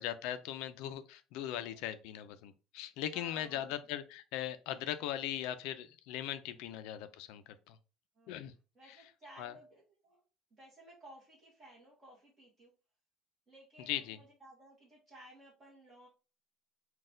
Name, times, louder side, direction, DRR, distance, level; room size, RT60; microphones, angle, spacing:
voice 1, 0.0-7.8 8.3-8.5 9.4-9.5 13.9-14.2, left 11 dB, 70° left, 11 dB, 0.4 m, -39 dB
voice 2, 1.4-1.8 3.1-3.6 6.5-6.7 8.2-8.4 8.7-10.2 10.6-12.7 13.5-16.1, right 1 dB, 20° right, -6 dB, 1.2 m, -57 dB
4.1 x 2.3 x 3.7 m, 0.33 s
cardioid pair, 180°, 0 cm